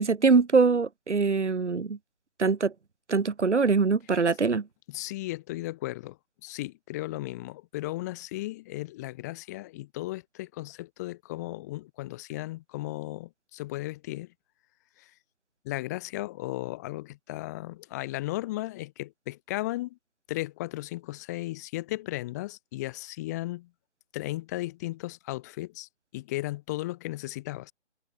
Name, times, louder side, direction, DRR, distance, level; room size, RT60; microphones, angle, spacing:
voice 1, 0.0-2.0 2.4-2.7 3.1-4.7, right 4 dB, 90° right, 1.4 m, -23 dB
voice 2, 4.9-6.2 6.4-14.3 15.0-15.1 15.6-20.0 20.3-23.7 24.1-27.7, left 18 dB, 15° left, 2.2 m, -35 dB
figure-of-eight pair, 160°, 34 cm